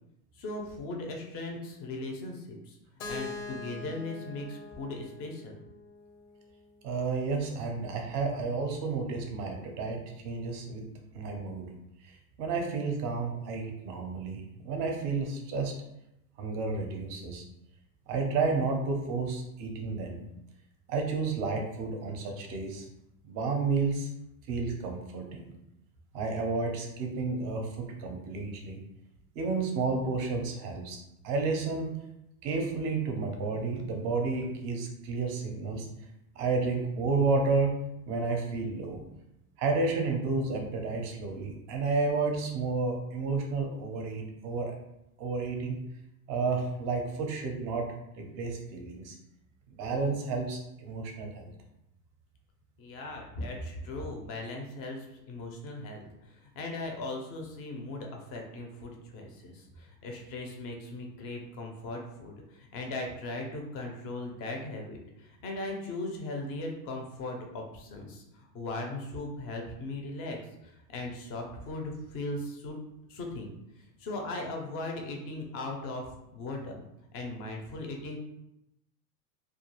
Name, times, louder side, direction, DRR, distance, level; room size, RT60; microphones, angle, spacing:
voice 1, 0.3-2.8 3.1-5.6 52.8-72.8 73.1-73.5 74.0-76.9 77.1-78.2, left 2 dB, 30° left, 1 dB, 0.4 m, -38 dB
Keyboard (musical), 3.0-6.9, left 4 dB, 80° left, 0.7 m, -43 dB
voice 2, 6.8-10.8 11.1-11.7 12.0-15.7 16.4-17.4 18.1-20.2 20.9-22.9 23.2-24.1 24.5-25.5 26.1-28.8 29.4-31.0 31.2-31.9 32.4-35.9 36.4-37.8 38.1-39.0 39.6-44.7 45.2-45.8 46.3-47.9 48.2-49.2 49.8-51.5, right 4 dB, 35° right, 2 dB, 0.5 m, -31 dB
2.3 x 2.3 x 2.9 m, 0.85 s
supercardioid pair, 130°, 47 cm